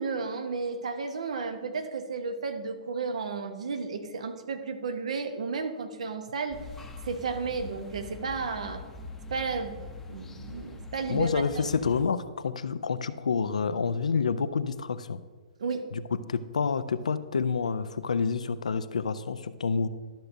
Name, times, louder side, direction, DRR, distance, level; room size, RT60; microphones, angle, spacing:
voice 1, 0.0-6.6 7.0-8.8 9.3-9.8 10.1-11.7 15.6-15.9, right 4 dB, 70° right, 7 dB, 0.9 m, -33 dB
sound 1, 6.5-12.0, left 3 dB, 10° left, 0.7 m, -43 dB
voice 2, 11.1-15.2 15.9-16.0 16.3-19.9, left 5 dB, 80° left, 13 dB, 0.4 m, -28 dB
12.0 x 6.6 x 2.6 m, 1.4 s
hypercardioid pair, 125°, 4 cm